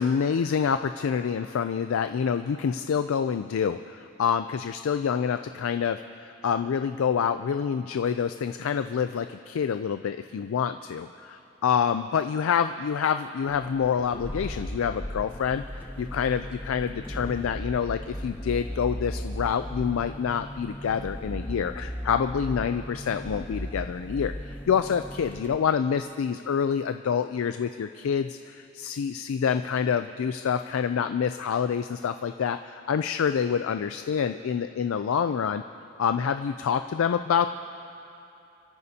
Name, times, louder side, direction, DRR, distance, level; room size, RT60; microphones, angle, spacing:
voice 1, 0.0-11.3 11.6-35.6 36.0-37.5, left 7 dB, 85° left, 9 dB, 0.4 m, -27 dB
sound 1, 13.5-25.6, equal, 10° left, 0.7 m, -37 dB
28.0 x 13.5 x 2.8 m, 2.7 s
head